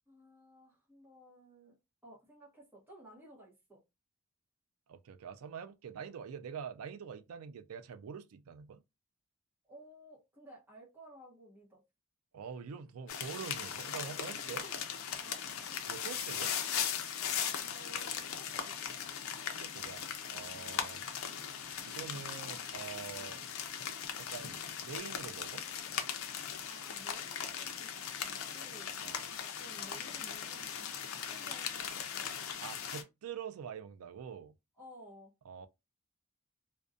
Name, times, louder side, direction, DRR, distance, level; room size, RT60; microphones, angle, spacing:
voice 1, 0.1-1.8 2.0-3.8 9.6-11.8 14.3-14.7 15.2-15.4 17.6-18.8 20.6-20.9 23.2-23.4 26.6-28.9 29.4-32.5 34.8-35.3, right 1 dB, 10° right, 0.9 m, -56 dB
voice 2, 4.9-8.8 12.3-14.6 15.9-16.5 19.6-21.0 21.8-23.4 24.2-25.6 29.0-29.2 32.6-34.5 35.5-35.7, right 7 dB, 85° right, 0.4 m, -45 dB
sound 1, 13.1-33.0, left 8 dB, 70° left, 0.5 m, -39 dB
2.5 x 2.2 x 2.4 m
head